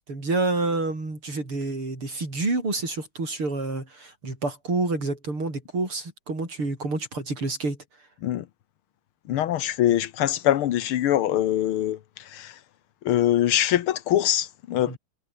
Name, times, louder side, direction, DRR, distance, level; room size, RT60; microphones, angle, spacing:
voice 1, 0.0-7.8 14.9-15.0, right 3 dB, 85° right, 8.1 m, -28 dB
voice 2, 9.3-12.5 13.0-15.0, left 12 dB, 85° left, 1.9 m, -23 dB
omnidirectional pair, 2.3 m